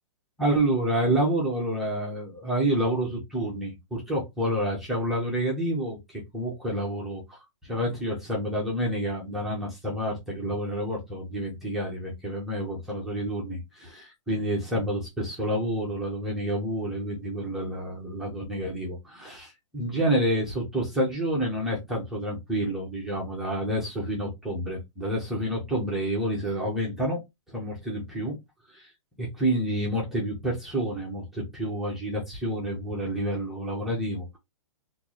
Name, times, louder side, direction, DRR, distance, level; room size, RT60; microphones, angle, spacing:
voice 1, 0.4-27.2 27.5-28.3 28.7-28.9 29.2-34.4, right 1 dB, ahead, 0.3 m, -29 dB
2.9 x 2.2 x 3.7 m
hypercardioid pair, 175°, 16 cm